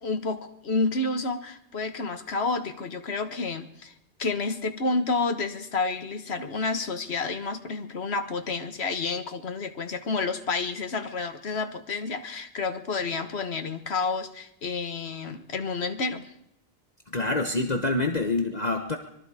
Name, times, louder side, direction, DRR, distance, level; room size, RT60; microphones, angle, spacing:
voice 1, 0.0-3.9 4.2-16.3, left 3 dB, 75° left, 7 dB, 1.7 m, -30 dB
voice 2, 17.1-19.0, left 2 dB, 40° left, 5 dB, 1.3 m, -26 dB
25.0 x 22.0 x 5.0 m, 0.77 s
omnidirectional pair, 1.1 m